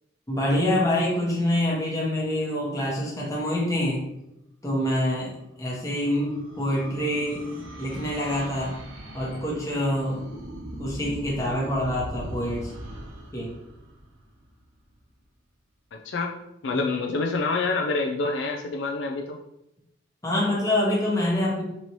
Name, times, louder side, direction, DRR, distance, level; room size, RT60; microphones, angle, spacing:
voice 1, 0.3-4.0 4.6-5.3 5.6-7.5 7.8-8.8 9.1-10.3 10.8-12.7 13.3-13.5 16.7-16.8 20.2-21.6, left 1 dB, 15° left, -4 dB, 0.9 m, -26 dB
sound 1, 5.3-14.8, equal, 65° right, 0.8 m, -40 dB
voice 2, 15.9-19.4, left 3 dB, 60° left, 2 dB, 0.3 m, -27 dB
4.1 x 3.0 x 2.9 m, 0.85 s
head